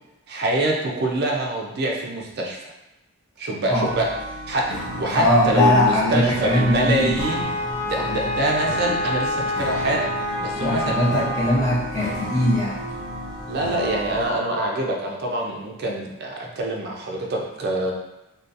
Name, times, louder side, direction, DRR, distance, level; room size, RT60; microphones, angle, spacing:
voice 1, 0.3-2.7 3.4-4.1 4.5-4.6 5.0-7.4 7.8-10.1 10.4-11.1 13.5-17.9, right 1 dB, 50° right, -1 dB, 0.4 m, -25 dB
sound 1, 3.8-14.3, right 1 dB, 60° left, 0.5 m, -33 dB
voice 2, 5.2-7.1 8.0-8.3 10.5-12.8, left 1 dB, 15° left, -8 dB, 0.5 m, -20 dB
Wind instrument woodwind instrument, 7.2-11.7, left 1 dB, 30° right, 1.0 m, -28 dB
2.7 x 2.2 x 2.4 m, 0.94 s
head